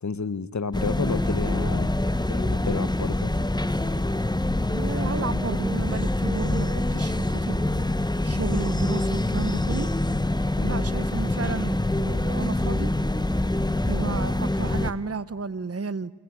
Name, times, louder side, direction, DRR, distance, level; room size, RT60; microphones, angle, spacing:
voice 1, 0.0-1.9 2.3-3.3 10.6-10.9, left 4 dB, 45° left, 16 dB, 1.1 m, -30 dB
sound 1, 0.7-14.9, left 1 dB, 10° left, 1.2 m, -25 dB
voice 2, 4.7-7.7 8.2-9.9 10.6-12.9 13.9-16.1, right 4 dB, 35° right, 17 dB, 1.0 m, -32 dB
27.0 x 21.0 x 9.8 m, 1.2 s
cardioid pair, 50°, 41 cm